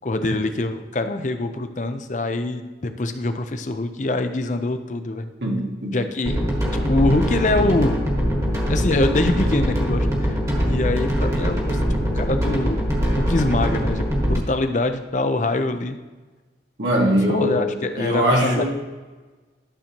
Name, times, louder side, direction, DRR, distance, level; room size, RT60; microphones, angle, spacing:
voice 1, 0.0-5.3 5.9-6.4 6.7-8.0 8.7-12.9 13.2-16.0 17.3-18.6, left 2 dB, 45° left, 8 dB, 0.6 m, -24 dB
voice 2, 5.4-6.0 16.8-17.7 18.0-18.6, equal, 75° right, -3 dB, 1.7 m, -21 dB
sound 1, 6.3-14.4, equal, 20° right, 1.4 m, -22 dB
12.0 x 6.8 x 3.0 m, 1.3 s
head